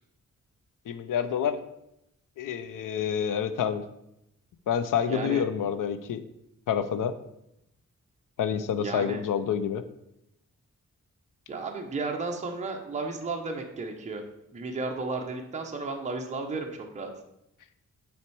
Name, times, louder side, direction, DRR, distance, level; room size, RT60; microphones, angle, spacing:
voice 1, 0.9-1.6 2.4-3.8 4.7-6.2 6.7-7.1 8.4-9.8, left 8 dB, 85° left, 11 dB, 0.6 m, -28 dB
voice 2, 5.1-5.4 8.8-9.2 11.5-14.2 14.5-17.1, right 3 dB, 25° right, 2 dB, 0.6 m, -33 dB
5.9 x 4.3 x 4.6 m, 0.82 s
wide cardioid pair, 170°, 31 cm